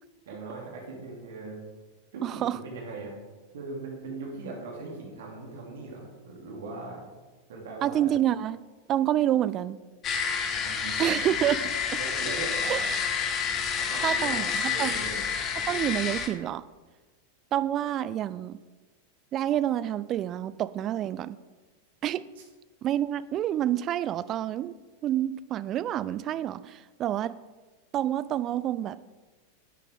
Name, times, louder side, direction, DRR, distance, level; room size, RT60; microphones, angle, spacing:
voice 1, 0.3-1.6 2.1-3.2 3.5-7.1 7.5-8.1 10.6-11.4 12.0-12.9 13.8-15.2, right 3 dB, 60° right, -1 dB, 2.6 m, -39 dB
voice 2, 2.2-2.6 7.8-8.6 8.9-9.8 11.0-11.6 12.7-12.8 14.0-14.9 15.7-16.6 17.5-18.6 19.3-21.4 22.0-22.2 22.8-24.8 25.0-27.4 27.9-29.0, right 12 dB, 30° right, 16 dB, 0.4 m, -28 dB
sound 1, 10.0-16.3, left 6 dB, 30° left, 1.1 m, -29 dB
11.0 x 8.4 x 3.6 m, 1.3 s
figure-of-eight pair, 90°, 0 cm